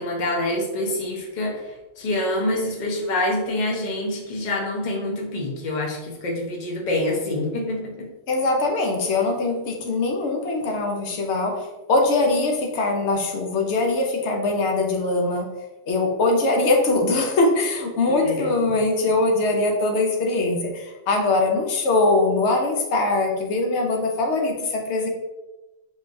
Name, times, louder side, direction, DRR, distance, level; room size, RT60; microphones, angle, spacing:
voice 1, 0.0-7.9 18.1-18.5, left 1 dB, 45° left, -1 dB, 0.8 m, -26 dB
voice 2, 8.3-15.5 15.9-25.1, left 2 dB, 85° left, 2 dB, 1.0 m, -22 dB
4.0 x 3.2 x 2.5 m, 1.0 s
omnidirectional pair, 1.1 m